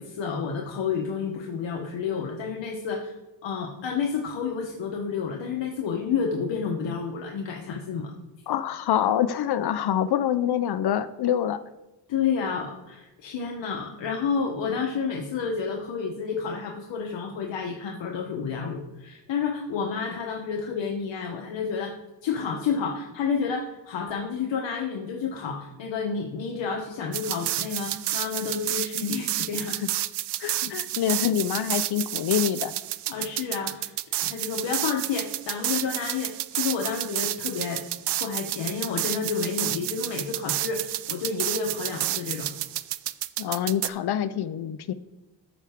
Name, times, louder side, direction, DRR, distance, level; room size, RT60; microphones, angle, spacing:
voice 1, 0.0-3.1 3.4-8.1 12.1-21.9 22.2-29.8 30.4-30.8 33.1-33.9 34.2-42.5, left 6 dB, 80° left, 1 dB, 1.1 m, -30 dB
voice 2, 8.5-11.6 29.8-29.9 30.4-32.7 43.4-44.9, left 10 dB, 60° left, 13 dB, 0.5 m, -26 dB
sound 1, 27.1-43.9, right 14 dB, 65° right, 0.5 m, -30 dB
13.5 x 5.9 x 3.5 m, 1.0 s
wide cardioid pair, 160°, 44 cm